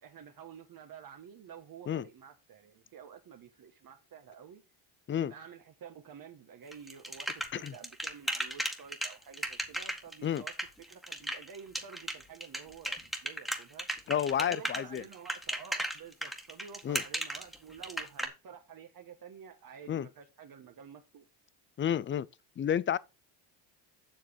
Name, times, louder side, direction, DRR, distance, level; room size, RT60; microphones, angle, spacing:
voice 1, 0.0-4.6 5.2-10.5 10.9-13.9 14.4-21.3, right 7 dB, 45° right, 1.4 m, -50 dB
sound 1, 6.7-18.3, right 1 dB, ahead, 1.8 m, -35 dB
voice 2, 14.1-15.0 16.8-17.0 19.9-20.1 21.8-22.3 22.6-23.0, left 9 dB, 25° left, 0.4 m, -30 dB
7.7 x 6.7 x 5.2 m
cardioid pair, 100°, 49 cm